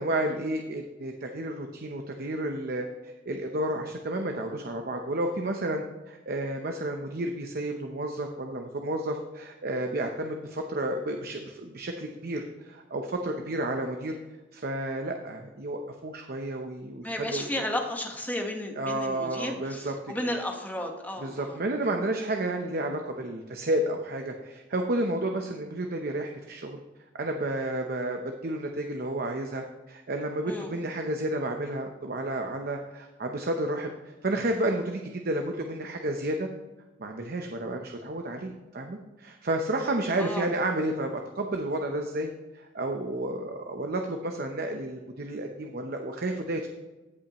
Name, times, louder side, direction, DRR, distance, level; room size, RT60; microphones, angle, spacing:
voice 1, 0.0-14.1 14.5-17.6 18.8-20.1 21.2-26.8 27.1-36.5 37.0-46.7, right 1 dB, 50° right, 4 dB, 0.8 m, -31 dB
voice 2, 17.0-21.6 30.4-30.8 40.2-40.5, left 1 dB, 10° left, 2 dB, 1.3 m, -33 dB
15.5 x 5.5 x 3.0 m, 1.1 s
head